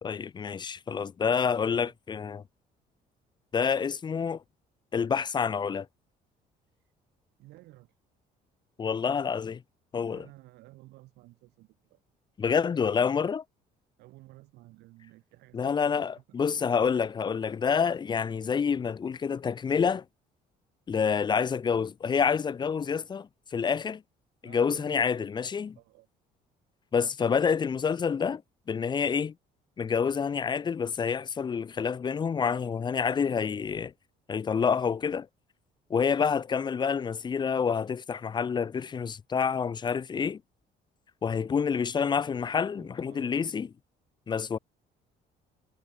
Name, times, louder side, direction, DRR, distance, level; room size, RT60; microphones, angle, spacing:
voice 1, 0.0-2.4 3.5-4.4 4.9-5.9 8.8-9.6 9.9-10.2 12.4-13.4 15.5-20.0 20.9-24.0 24.4-25.8 26.9-28.4 28.7-29.3 29.8-33.9 34.3-35.3 35.9-40.4 41.2-43.7 44.3-44.6, left 6 dB, 25° left, 0.5 m, -28 dB
voice 2, 1.4-1.9 6.7-6.8 7.4-8.0 10.1-12.0 14.0-16.2 24.4-25.3 25.8-26.1 42.7-43.4, right 18 dB, 85° right, 2.0 m, -54 dB
cardioid pair, 110°, 17 cm